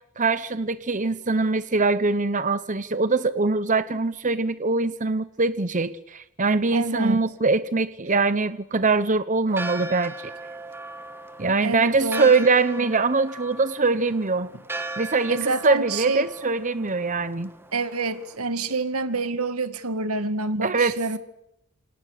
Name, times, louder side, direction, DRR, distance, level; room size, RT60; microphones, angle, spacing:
voice 1, 0.2-10.3 11.4-14.5 15.0-17.5 20.6-20.9, right 3 dB, 35° right, 13 dB, 1.0 m, -23 dB
voice 2, 6.7-7.2 11.6-12.5 12.8-12.9 15.3-16.3 17.7-21.2, right 3 dB, 85° right, 11 dB, 2.1 m, -27 dB
Church bell, 9.5-18.4, right 2 dB, 10° right, 1.5 m, -38 dB
29.0 x 28.5 x 6.7 m, 0.79 s
head